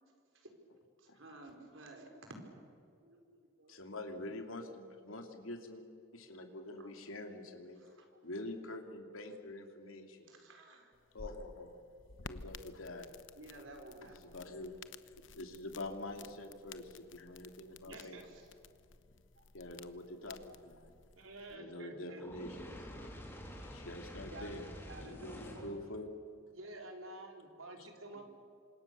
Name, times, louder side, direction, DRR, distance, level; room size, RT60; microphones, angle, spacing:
voice 1, 1.0-2.7 3.0-3.8 6.8-6.9 7.7-8.2 10.2-10.9 13.4-14.4 17.8-18.5 19.4-19.5 24.2-25.6 28.1-28.2, right 2 dB, 70° right, 3 dB, 4.8 m, -53 dB
voice 2, 3.7-5.8 6.1-7.8 8.2-10.4 11.1-11.8 12.2-13.1 14.2-14.8 15.3-18.2 19.5-20.9 21.5-22.9 23.6-24.7 25.0-26.1, left 2 dB, 85° left, 4 dB, 2.9 m, -46 dB
sound 1, 10.9-21.6, left 4 dB, 65° left, 1.0 m, -54 dB
voice 3, 17.9-18.2 21.2-22.2 26.5-28.2, right 2 dB, 90° right, 3 dB, 4.2 m, -49 dB
Fire, 22.2-25.8, equal, 10° left, 3.6 m, -48 dB
28.5 x 26.0 x 7.0 m, 2.5 s
head